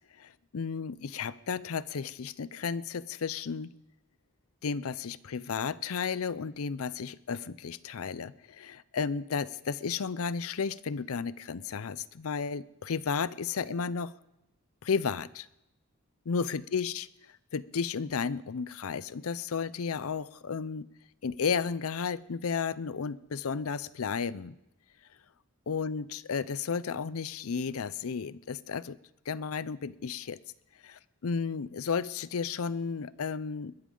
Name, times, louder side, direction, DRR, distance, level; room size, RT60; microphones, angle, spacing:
voice 1, 0.2-3.7 4.6-14.1 14.8-15.5 16.3-17.1 17.5-20.9 21.2-24.5 25.7-29.0 29.3-30.4 30.8-33.7, left 5 dB, 70° left, 18 dB, 0.5 m, -33 dB
22.0 x 12.5 x 3.9 m, 0.86 s
head